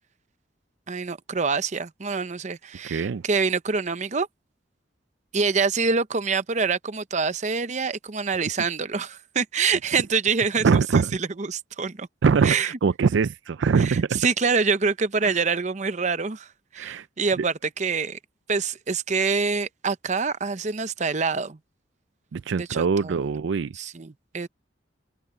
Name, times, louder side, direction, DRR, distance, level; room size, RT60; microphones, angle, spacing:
voice 1, 0.9-4.3 5.3-12.1 12.4-12.7 13.8-16.5 16.7-18.2 18.5-21.6 22.6-23.3 23.7-24.5, right 5 dB, 40° right, 0.7 m, -26 dB
voice 2, 2.9-3.2 10.6-11.1 12.2-14.2 15.2-15.3 16.8-17.0 22.3-23.7, right 5 dB, 80° right, 0.4 m, -22 dB
head